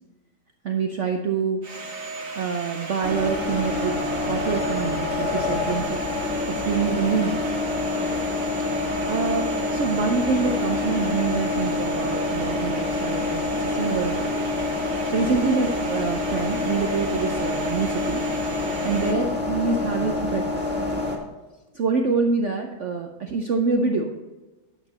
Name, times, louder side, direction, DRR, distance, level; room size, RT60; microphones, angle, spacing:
voice 1, 0.6-1.6 2.4-4.0 4.3-6.0 6.5-7.4 9.1-14.3 15.1-18.2 18.8-21.0 21.7-24.1, right 5 dB, 85° right, 3 dB, 0.6 m, -26 dB
Domestic sounds home sounds, 1.6-19.1, right 3 dB, 65° right, 2.1 m, -36 dB
sound 1, 3.0-21.2, left 2 dB, 5° right, 1.4 m, -27 dB
9.6 x 8.2 x 4.1 m, 1.2 s
omnidirectional pair, 2.2 m